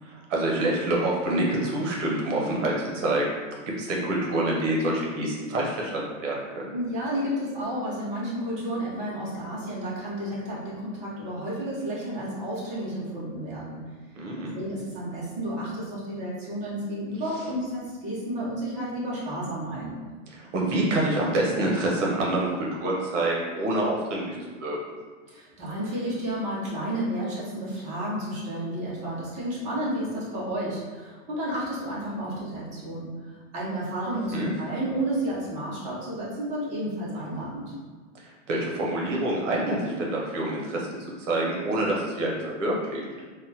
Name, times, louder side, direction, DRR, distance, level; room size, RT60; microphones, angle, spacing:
voice 1, 0.0-3.4 3.8-6.7 14.1-14.6 20.3-24.8 34.3-34.5 38.2-40.9 41.2-43.0, right 1 dB, 65° right, -2 dB, 0.9 m, -27 dB
voice 2, 6.7-13.8 14.5-20.0 25.3-37.7, right 1 dB, 20° right, -8 dB, 0.7 m, -31 dB
3.5 x 2.2 x 2.7 m, 1.4 s
supercardioid pair, 160°, 39 cm